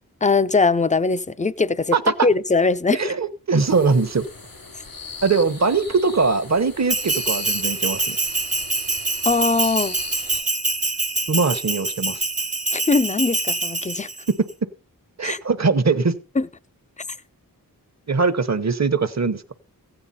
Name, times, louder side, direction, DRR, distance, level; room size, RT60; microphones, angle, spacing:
voice 1, 0.2-2.0 2.2-3.1 9.2-10.0 12.7-14.1 15.2-15.4 16.4-16.5, left 4 dB, 20° left, 0.5 m, -20 dB
voice 2, 1.9-2.3 2.9-4.3 5.2-8.2 11.3-12.2 14.4-14.5 15.2-16.1 18.1-19.4, right 4 dB, 50° right, 1.0 m, -21 dB
sound 1, 3.6-10.4, left 4 dB, 80° left, 2.8 m, -39 dB
Bell, 6.9-14.3, right 2 dB, 20° right, 0.6 m, -25 dB
15.0 x 8.9 x 4.1 m
wide cardioid pair, 55°, 35 cm